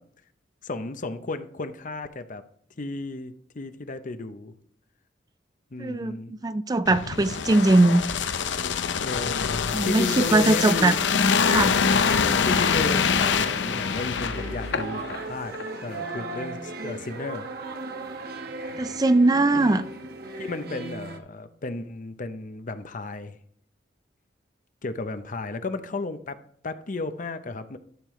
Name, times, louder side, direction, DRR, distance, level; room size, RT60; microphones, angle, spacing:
voice 1, 0.6-2.4 2.8-4.5 5.7-6.3 9.0-11.0 12.5-15.5 15.8-17.5 19.5-19.8 20.4-23.4 24.8-26.4 26.6-27.8, left 3 dB, 45° left, 0.7 m, -33 dB
voice 2, 5.8-8.1 9.7-11.0 11.5-11.8 18.8-19.8, right 2 dB, 20° right, 0.4 m, -21 dB
sound 1, 6.9-15.2 15.5-15.7, left 6 dB, 85° left, 0.6 m, -25 dB
sound 2, 13.2-21.2, right 2 dB, 60° right, 1.0 m, -37 dB
12.5 x 6.6 x 3.1 m
head